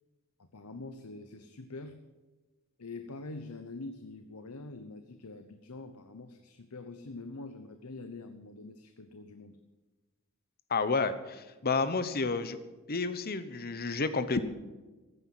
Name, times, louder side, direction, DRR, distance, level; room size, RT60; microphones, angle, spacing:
voice 1, 0.4-2.0 2.8-9.6, left 3 dB, 85° left, 8 dB, 1.0 m, -45 dB
voice 2, 10.7-12.6 12.9-14.4, left 4 dB, 45° left, 12 dB, 1.1 m, -30 dB
15.0 x 9.8 x 7.8 m, 1.2 s
head